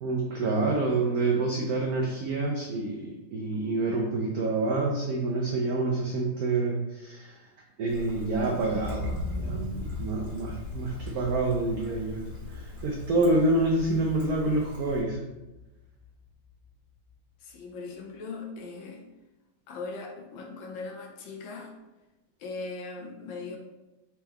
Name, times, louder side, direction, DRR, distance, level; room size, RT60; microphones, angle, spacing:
voice 1, 0.0-7.4 7.8-15.2, right 2 dB, 85° right, 0 dB, 0.8 m, -27 dB
Trickle dribble, 7.9-15.0, equal, 50° right, 1.8 m, -44 dB
sound 1, 8.8-16.6 17.1-17.2, left 2 dB, 45° left, 0.9 m, -39 dB
voice 2, 17.4-19.0 19.7-21.7 22.4-23.6, left 3 dB, 75° left, 1 dB, 1.4 m, -39 dB
4.4 x 3.6 x 2.9 m, 1.0 s
omnidirectional pair, 2.2 m